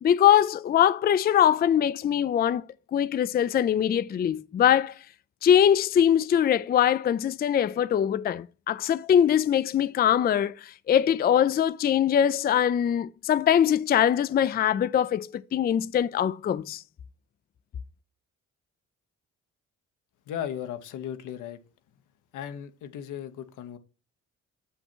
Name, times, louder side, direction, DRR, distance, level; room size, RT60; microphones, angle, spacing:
voice 1, 0.0-2.6 2.9-4.9 5.4-16.8, left 9 dB, 30° left, 0.4 m, -22 dB
voice 2, 20.3-21.6 22.3-23.8, left 9 dB, 85° left, 1.1 m, -36 dB
7.1 x 5.5 x 4.4 m
cardioid pair, 90°, 30 cm